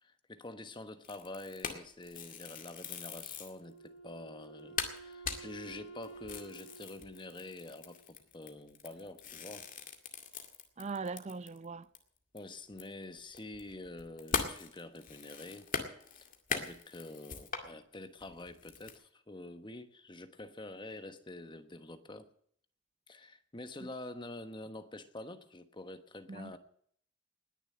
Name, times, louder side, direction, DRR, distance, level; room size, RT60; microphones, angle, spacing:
voice 1, 0.0-9.7 12.3-15.7 16.2-22.3 23.1-26.6, left 2 dB, 25° left, 1.2 m, -47 dB
sound 1, 1.0-3.6 4.1-4.2 4.4-4.5 4.8-11.6 11.9-12.0 12.4-17.7 18.2-19.0, left 5 dB, 45° left, 2.1 m, -41 dB
Wind instrument woodwind instrument, 3.6-8.1, right 3 dB, 85° left, 4.7 m, -52 dB
voice 2, 10.8-11.9 23.8-23.9 26.3-26.5, right 4 dB, 35° right, 0.5 m, -40 dB
20.0 x 7.1 x 8.7 m
head